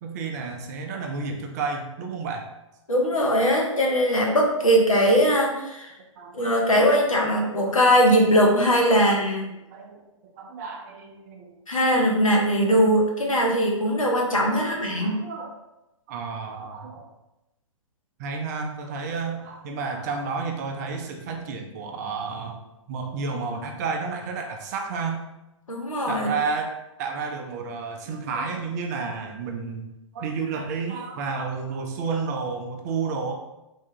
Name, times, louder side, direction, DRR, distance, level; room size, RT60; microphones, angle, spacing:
voice 1, 0.0-2.4 6.2-6.3 6.7-6.9 7.1-7.8 8.9-12.1 14.4-15.6 16.1-17.1 18.2-22.6 22.9-25.2 26.1-26.7 27.0-29.9 30.1-33.3, right 4 dB, 30° right, 3 dB, 0.4 m, -31 dB
voice 2, 2.9-5.9 6.3-9.4 11.7-15.2 25.7-26.3, equal, 85° left, -1 dB, 0.8 m, -20 dB
3.3 x 2.3 x 2.7 m, 0.92 s
figure-of-eight pair, 120°, 17 cm